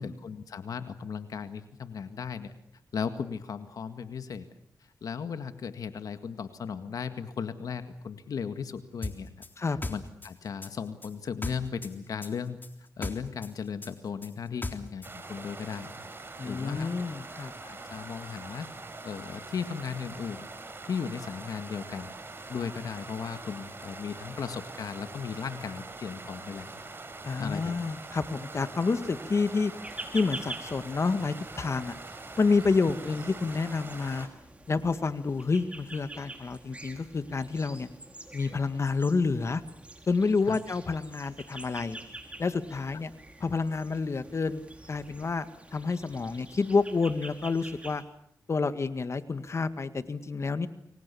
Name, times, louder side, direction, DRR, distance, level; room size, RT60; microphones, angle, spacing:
voice 1, 0.0-2.5 2.9-4.5 5.0-9.3 9.9-12.6 13.0-15.9 16.5-16.9 17.6-18.7 19.0-20.5 20.9-22.1 22.5-26.7 27.4-27.9 40.5-40.6, left 6 dB, 75° left, 9 dB, 1.9 m, -36 dB
sound 1, 9.0-11.9 12.2-15.1, left 2 dB, 30° left, 3.6 m, -37 dB
sound 2, 15.0-34.3, right 3 dB, 35° right, 5.1 m, -44 dB
voice 2, 16.4-17.5 27.2-29.7 30.1-32.0 32.4-34.3 34.7-37.9 38.3-39.6 40.1-42.0 42.4-43.1 43.4-44.6 44.9-48.0 48.5-50.7, left 4 dB, 50° left, 11 dB, 1.9 m, -29 dB
sound 3, 29.8-48.0, right 2 dB, 20° right, 4.6 m, -47 dB
29.5 x 23.5 x 7.1 m, 0.73 s
cardioid pair, 70°, 6 cm